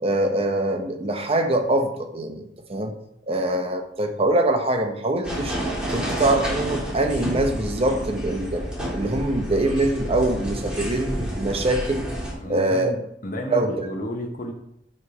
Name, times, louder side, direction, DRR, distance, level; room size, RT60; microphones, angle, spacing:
voice 1, 0.0-2.9 3.3-5.6 5.9-8.6 8.9-12.1 12.5-12.9 13.5-13.7, right 1 dB, 35° right, 5 dB, 0.8 m, -23 dB
sound 1, 5.2-12.3, equal, 5° right, 1.7 m, -29 dB
voice 2, 12.4-14.5, left 1 dB, 50° left, 2 dB, 0.9 m, -32 dB
7.9 x 3.3 x 4.9 m, 0.78 s
head